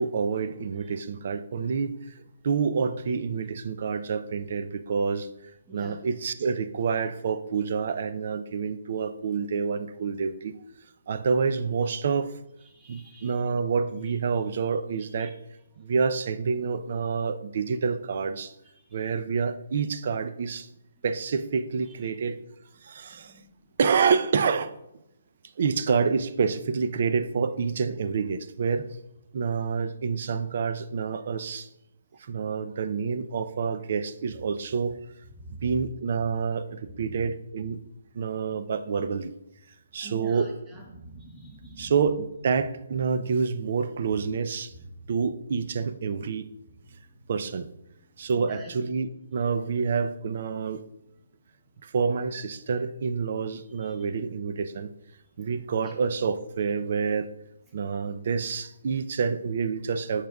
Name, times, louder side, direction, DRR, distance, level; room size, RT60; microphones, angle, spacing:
voice 1, 0.0-5.3 5.7-10.5 11.1-12.3 12.9-15.4 15.8-18.5 18.9-20.7 21.0-22.4 22.8-23.3 23.8-24.7 25.6-28.9 29.3-31.7 32.2-35.0 35.6-37.8 38.1-39.3 39.9-40.5 41.8-44.7 45.1-46.5 47.3-47.7 48.2-50.8 51.8-54.9 55.4-57.3 57.7-60.3, right 5 dB, 50° right, 12 dB, 0.5 m, -28 dB
voice 2, 5.7-6.1 12.6-13.3 14.6-14.7 15.2-15.3 18.8-18.9 23.3-23.5 35.4-35.6 37.1-37.2 40.0-41.9 48.4-48.8 53.8-53.9 55.8-55.9, right 2 dB, 10° right, -1 dB, 1.2 m, -45 dB
8.7 x 6.5 x 2.3 m, 0.86 s
hypercardioid pair, 160°, 0 cm